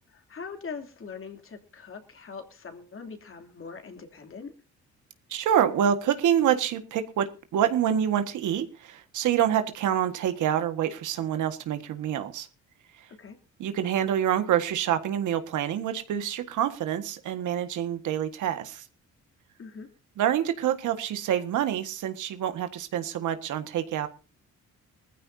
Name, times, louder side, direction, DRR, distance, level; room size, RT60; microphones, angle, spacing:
voice 1, 0.3-4.5 13.2-13.4 19.6-19.9, left 5 dB, 45° left, 5 dB, 3.0 m, -41 dB
voice 2, 5.3-12.5 13.0-13.1 13.6-18.8 20.2-24.1, right 10 dB, 80° right, 9 dB, 1.7 m, -27 dB
20.0 x 14.5 x 2.8 m, 0.32 s
cardioid pair, 90°, 30 cm